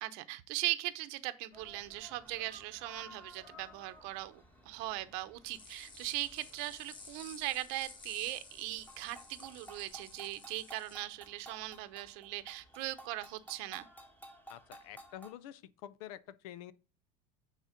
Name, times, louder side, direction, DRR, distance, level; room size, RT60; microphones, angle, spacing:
voice 1, 0.0-13.9, right 17 dB, 65° right, 0.8 m, -39 dB
sound 1, 1.5-15.3, equal, 10° left, 1.5 m, -56 dB
sound 2, 5.4-10.9, left 4 dB, 25° left, 1.7 m, -53 dB
voice 2, 14.5-16.7, left 12 dB, 85° left, 0.7 m, -48 dB
9.2 x 4.1 x 5.1 m
cardioid pair, 155°, 18 cm